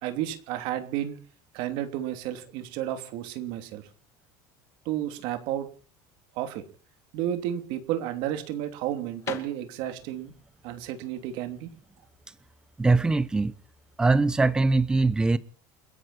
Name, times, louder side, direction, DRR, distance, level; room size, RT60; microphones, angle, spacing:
voice 1, 0.0-1.2 1.5-3.9 4.8-5.7 6.3-6.6 7.1-10.3 10.6-11.7, right 12 dB, 60° right, 3.0 m, -32 dB
sound 1, 9.2-13.0, left 9 dB, 30° left, 2.5 m, -44 dB
voice 2, 12.8-13.5 14.0-15.4, right 3 dB, 10° right, 0.8 m, -22 dB
29.5 x 11.5 x 4.3 m
cardioid pair, 175°, 9 cm